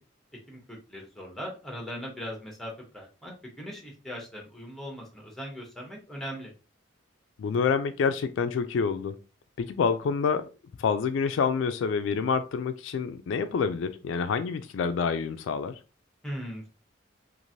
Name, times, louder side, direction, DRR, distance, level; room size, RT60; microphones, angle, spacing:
voice 1, 0.5-6.5 16.2-16.7, equal, ahead, 0.9 m, -39 dB
voice 2, 7.4-9.2 9.6-10.5 10.8-15.8, left 5 dB, 70° left, 0.3 m, -27 dB
3.1 x 2.5 x 2.6 m
head